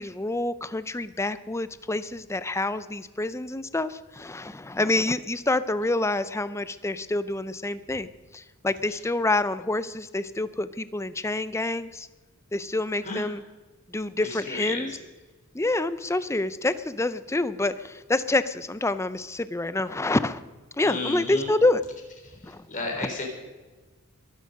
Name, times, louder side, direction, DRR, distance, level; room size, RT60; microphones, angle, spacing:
voice 1, 0.0-12.1 12.5-13.4 13.9-15.0 15.5-20.4 20.8-21.8 22.4-22.6 23.0-23.1, left 2 dB, 15° left, 14 dB, 0.5 m, -27 dB
voice 2, 14.2-14.9 20.8-21.5 22.7-23.2, left 3 dB, 35° left, 1 dB, 4.1 m, -32 dB
22.5 x 10.5 x 5.3 m, 1.3 s
head